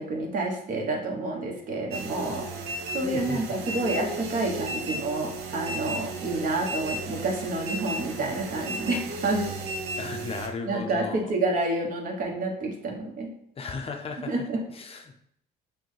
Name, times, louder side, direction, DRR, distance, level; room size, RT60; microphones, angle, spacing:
voice 1, 0.0-2.5 2.9-9.5 10.7-13.3 14.3-14.6, right 2 dB, 55° right, 2 dB, 1.0 m, -29 dB
sound 1, 1.9-10.5, right 2 dB, 75° right, 0.6 m, -34 dB
voice 2, 3.0-3.9 10.0-11.3 13.6-15.2, left 4 dB, 35° left, 4 dB, 0.5 m, -36 dB
6.0 x 2.2 x 3.2 m, 0.73 s
cardioid pair, 110°, 17 cm